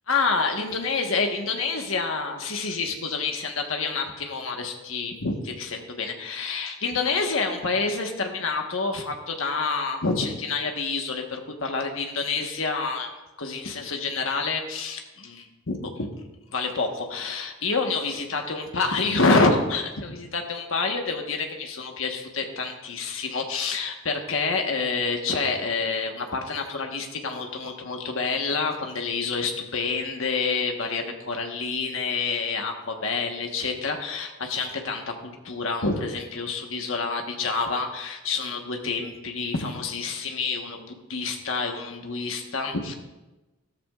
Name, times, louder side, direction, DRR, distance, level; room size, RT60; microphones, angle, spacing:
voice 1, 0.1-16.1 16.5-42.9, left 4 dB, 70° left, 3 dB, 1.4 m, -28 dB
14.0 x 13.0 x 2.5 m, 1.1 s
head